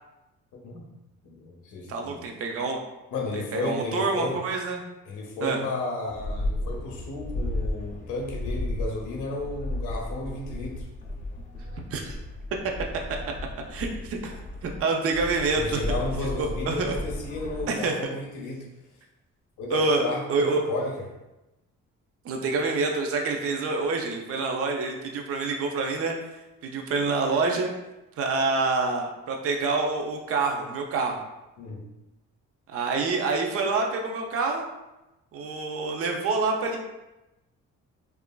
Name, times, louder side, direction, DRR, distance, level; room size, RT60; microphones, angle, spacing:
voice 1, 0.5-0.8 1.2-2.2 3.1-4.4 5.1-10.9 15.5-18.7 19.6-20.9 31.6-31.8, left 2 dB, 80° left, 0 dB, 0.6 m, -33 dB
voice 2, 1.9-2.8 3.3-4.8 5.4-5.6 11.9-12.2 13.7-15.8 16.4-17.0 17.7-17.9 19.7-20.6 22.2-26.2 26.6-27.7 28.2-31.2 32.7-34.6 35.3-36.8, right 3 dB, 50° right, 2 dB, 0.5 m, -27 dB
sound 1, 6.1-14.8 15.1-17.7, left 1 dB, 25° left, 0.4 m, -34 dB
2.9 x 2.4 x 2.2 m, 0.99 s
cardioid pair, 90°, 30 cm